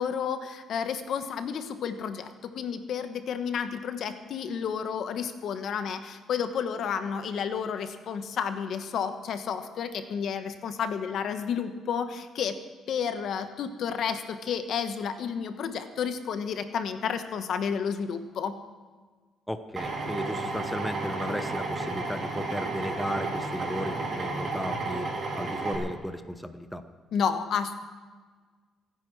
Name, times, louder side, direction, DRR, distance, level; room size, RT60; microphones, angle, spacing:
voice 1, 0.0-12.6 12.9-18.5 27.1-27.7, left 7 dB, 65° left, 8 dB, 1.2 m, -31 dB
voice 2, 19.5-25.1 25.4-26.8, equal, 5° left, 9 dB, 0.9 m, -35 dB
Drill, 19.8-25.8, right 3 dB, 50° right, 4.1 m, -32 dB
25.5 x 9.7 x 4.8 m, 1.4 s
cardioid pair, 110°, 0 cm